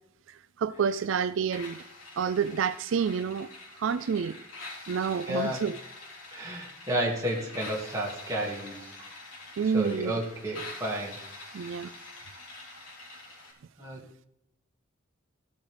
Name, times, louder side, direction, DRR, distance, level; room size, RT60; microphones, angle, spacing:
voice 1, 0.6-1.8 2.2-3.5 3.8-4.4 4.9-5.8 9.6-10.1 11.5-11.9, right 6 dB, 65° right, 0.3 m, -28 dB
sound 1, 1.5-13.5, left 2 dB, 75° left, 3.6 m, -45 dB
voice 2, 5.3-5.6 6.3-9.1 9.6-11.2 11.5-11.7 13.8-14.1, equal, 15° right, 2.1 m, -32 dB
15.5 x 8.1 x 3.4 m
head